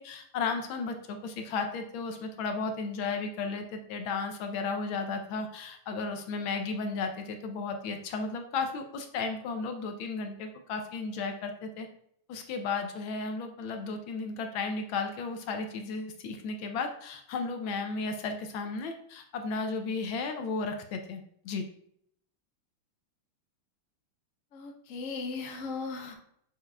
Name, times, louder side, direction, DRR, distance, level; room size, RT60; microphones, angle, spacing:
voice 1, 0.0-11.9 12.3-21.7, left 4 dB, 75° left, 6 dB, 1.3 m, -34 dB
voice 2, 24.5-26.1, left 4 dB, 60° left, 2 dB, 0.9 m, -37 dB
6.4 x 6.4 x 2.3 m, 0.69 s
omnidirectional pair, 2.4 m